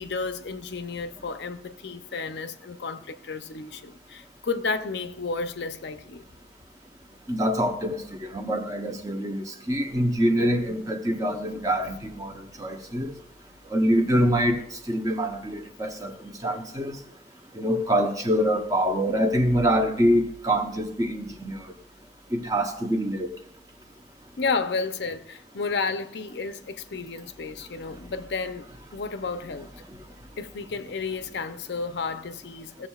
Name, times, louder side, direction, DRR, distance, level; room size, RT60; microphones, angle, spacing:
voice 1, 0.0-6.2 10.4-10.8 11.1-11.2 11.6-11.7 12.2-12.7 13.0-13.1 14.0-14.2 24.4-28.7 28.9-29.7 30.4-32.9, left 4 dB, 65° left, 0.5 m, -32 dB
voice 2, 7.3-13.1 13.7-14.6 14.9-16.1 16.4-17.0 17.5-21.6 22.3-23.3, equal, 20° right, 0.8 m, -25 dB
16.0 x 7.1 x 2.3 m
head